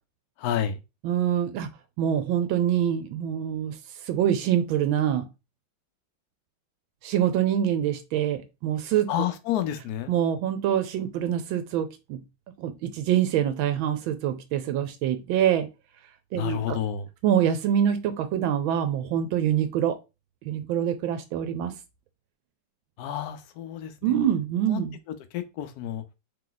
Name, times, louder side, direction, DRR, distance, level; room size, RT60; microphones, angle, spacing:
voice 1, 0.4-0.8 9.1-10.1 16.3-17.1 23.0-24.2 24.7-24.8 25.1-26.0, left 10 dB, 75° left, 0.9 m, -30 dB
voice 2, 1.0-1.7 2.0-3.8 4.0-5.3 7.0-9.1 10.1-12.2 12.6-15.7 16.3-16.8 17.2-20.0 20.5-21.7 24.0-24.9, right 10 dB, 80° right, 1.3 m, -25 dB
3.3 x 3.0 x 3.9 m
omnidirectional pair, 2.2 m